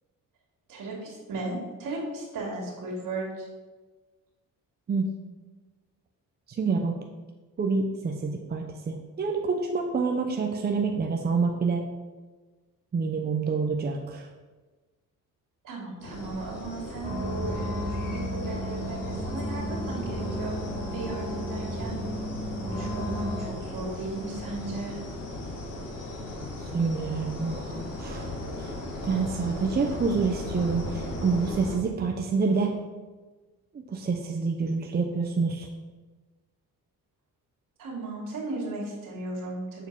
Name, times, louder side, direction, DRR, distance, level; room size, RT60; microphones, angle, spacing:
voice 1, 0.7-3.5 15.6-20.5 20.9-22.0 22.5-25.0 37.8-39.9, right 2 dB, 70° right, -2 dB, 2.6 m, -36 dB
voice 2, 6.5-7.0 7.6-11.8 12.9-14.3 26.7-28.7 29.0-32.8 33.7-35.7, right 4 dB, 30° right, 2 dB, 0.6 m, -27 dB
sound 1, 16.0-31.8, left 1 dB, 65° left, 1.9 m, -37 dB
sound 2, 17.0-23.5, equal, 20° left, 2.7 m, -33 dB
7.2 x 4.5 x 5.4 m, 1.3 s
cardioid pair, 125°, 34 cm